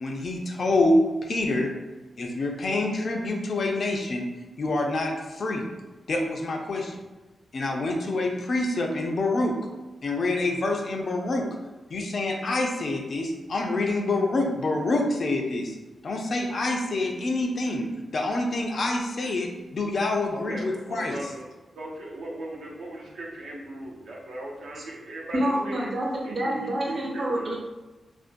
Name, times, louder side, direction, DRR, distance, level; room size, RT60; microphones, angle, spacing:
voice 1, 0.0-1.7 2.2-4.3 4.6-5.6 6.1-6.9 7.5-9.6 10.0-11.5 11.9-15.7 16.0-17.9 18.1-21.3, left 2 dB, 50° left, 2 dB, 0.3 m, -26 dB
voice 2, 20.3-25.9 26.2-27.5, right 1 dB, 85° right, -3 dB, 0.6 m, -38 dB
voice 3, 25.3-27.5, right 1 dB, 45° right, -2 dB, 0.6 m, -27 dB
2.4 x 2.2 x 2.5 m, 1.2 s
wide cardioid pair, 145°, 0 cm